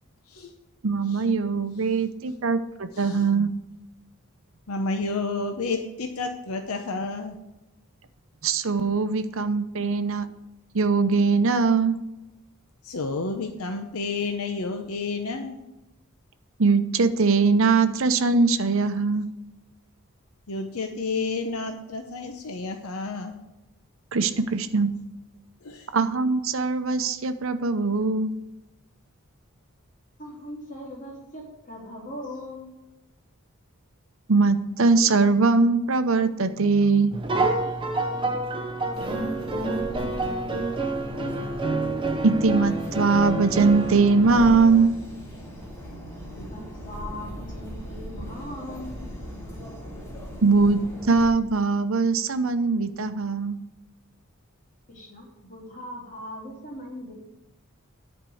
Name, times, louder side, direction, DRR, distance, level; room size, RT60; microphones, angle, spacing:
voice 1, 0.8-3.5 8.4-10.3 10.7-12.0 16.6-19.3 24.1-24.9 25.9-28.3 34.3-37.2 42.2-44.9 50.4-53.6, right 4 dB, 65° right, 10 dB, 0.7 m, -21 dB
voice 2, 2.9-3.3 4.7-7.4 12.8-15.6 20.5-23.3 25.6-25.9, left 3 dB, 80° left, 5 dB, 0.8 m, -30 dB
voice 3, 30.2-32.7 38.2-40.7 46.3-49.0 54.9-57.1, left 1 dB, 35° left, -3 dB, 3.0 m, -40 dB
sound 1, 37.1-44.9, right 2 dB, 20° right, 0.8 m, -28 dB
sound 2, 38.9-51.3, equal, 15° left, 2.1 m, -39 dB
10.0 x 4.5 x 7.7 m, 0.96 s
head